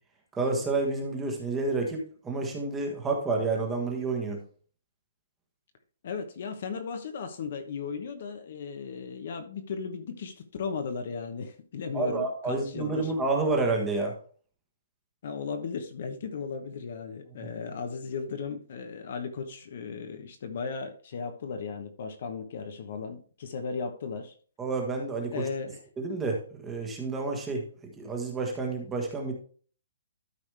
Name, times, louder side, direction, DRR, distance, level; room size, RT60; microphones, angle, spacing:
voice 1, 0.3-4.4 11.9-14.1 24.6-25.4 26.0-27.6 28.0-29.3, right 3 dB, 10° right, 1 dB, 1.3 m, -29 dB
voice 2, 6.0-13.1 15.2-24.3 25.3-25.8, left 5 dB, 40° left, 7 dB, 1.0 m, -36 dB
12.5 x 5.0 x 3.4 m, 0.43 s
hypercardioid pair, 180°, 0 cm